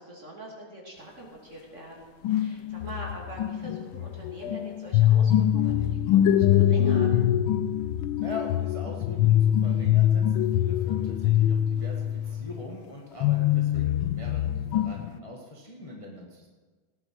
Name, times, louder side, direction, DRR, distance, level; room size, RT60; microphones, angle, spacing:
voice 1, 0.0-7.2, right 1 dB, 35° right, -2 dB, 3.1 m, -43 dB
sound 1, 2.2-12.7 13.2-15.2, left 11 dB, 85° left, 1.4 m, -24 dB
voice 2, 8.2-16.5, left 2 dB, 15° left, -1 dB, 1.6 m, -42 dB
18.0 x 10.0 x 4.7 m, 1.4 s
omnidirectional pair, 2.2 m